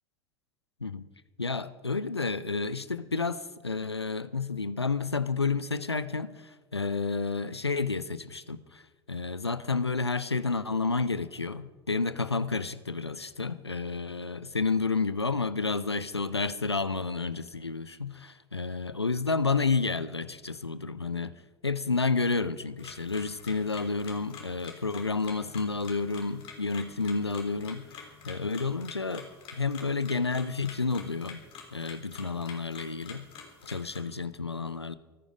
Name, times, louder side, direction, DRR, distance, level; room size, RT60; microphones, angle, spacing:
voice 1, 1.4-8.8 9.1-21.3 21.6-31.4 31.7-33.3 33.6-35.0, left 4 dB, 90° left, 0.6 m, -30 dB
sound 1, 22.8-34.0, left 6 dB, 45° left, 3.7 m, -48 dB
24.5 x 9.8 x 5.1 m
figure-of-eight pair, 70°, 13 cm